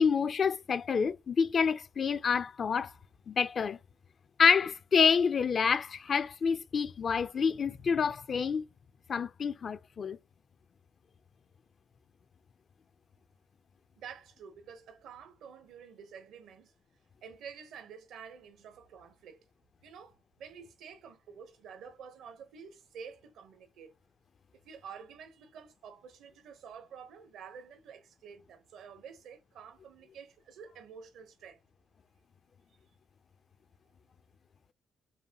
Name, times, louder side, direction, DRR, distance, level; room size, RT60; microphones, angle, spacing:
voice 1, 0.0-2.9 3.3-3.8 4.4-8.6 9.1-10.2, left 6 dB, 50° left, 0.4 m, -27 dB
voice 2, 14.0-16.7 17.2-19.4 19.8-23.9 24.6-31.6, right 7 dB, 80° right, 1.0 m, -49 dB
5.5 x 2.2 x 3.0 m
cardioid pair, 90°, 0 cm